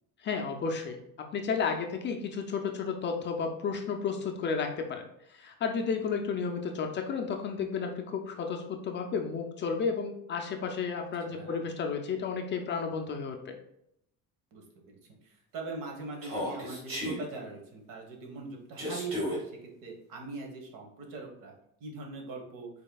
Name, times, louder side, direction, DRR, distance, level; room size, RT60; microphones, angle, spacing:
voice 1, 0.2-1.0 1.3-5.0 5.3-13.6, left 5 dB, 35° left, 3 dB, 0.4 m, -32 dB
voice 2, 11.3-11.6 14.5-21.5 21.8-22.7, right 3 dB, 65° right, 1 dB, 1.3 m, -42 dB
Human voice, 16.2-17.2 18.8-19.4, left 1 dB, 35° right, 1.8 m, -33 dB
5.3 x 4.1 x 2.3 m, 0.77 s
cardioid pair, 175°, 35 cm